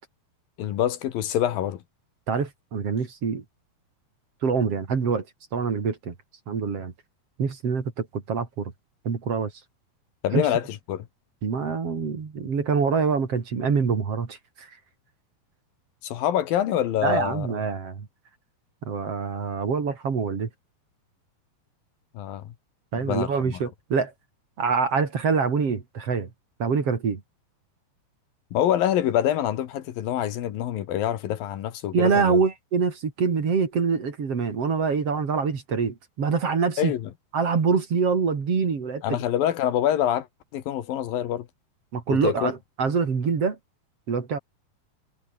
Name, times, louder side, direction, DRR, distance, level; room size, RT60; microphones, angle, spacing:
voice 1, 0.6-1.8 10.2-11.0 16.0-17.5 22.1-22.5 22.9-23.6 28.5-32.4 36.8-37.1 39.0-40.3 40.5-41.5 42.1-42.5, left 11 dB, 80° left, 3.2 m, -26 dB
voice 2, 2.3-3.4 4.4-5.2 5.5-6.1 6.5-6.9 7.4-8.7 9.1-9.5 10.3-10.5 11.4-14.7 17.0-18.1 18.8-20.5 22.9-24.1 24.6-26.3 26.6-27.2 31.9-36.9 37.3-39.2 41.9-43.6 44.1-44.4, right 5 dB, 45° right, 3.7 m, -25 dB
omnidirectional pair, 4.2 m